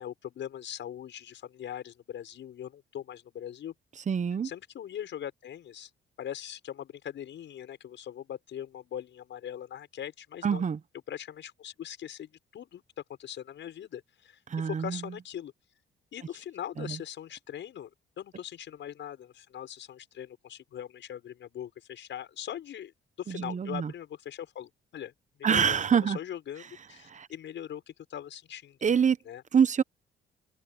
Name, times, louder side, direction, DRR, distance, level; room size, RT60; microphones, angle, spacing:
voice 1, 0.0-3.7 4.4-5.9 6.2-10.6 11.1-12.8 13.2-15.5 16.1-22.9 23.2-25.1 25.4-28.8 29.3-29.4, left 10 dB, 70° left, 7.0 m, -41 dB
voice 2, 4.1-4.5 10.4-10.8 14.5-15.0 16.8-17.0 23.3-23.9 25.4-26.2 27.1-27.3 28.8-29.2 29.5-29.8, right 7 dB, 40° right, 1.0 m, -25 dB
cardioid pair, 90°, 20 cm